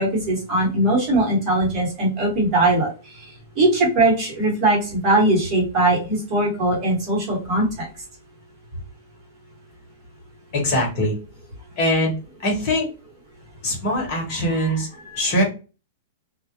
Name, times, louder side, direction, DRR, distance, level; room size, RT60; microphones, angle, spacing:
voice 1, 0.0-2.9 3.6-7.9, right 2 dB, 25° right, -3 dB, 1.1 m, -20 dB
voice 2, 10.5-11.2 11.8-12.9 13.6-15.4, left 1 dB, 40° left, -1 dB, 1.1 m, -22 dB
2.3 x 2.1 x 2.9 m, 0.31 s
supercardioid pair, 165°, 0 cm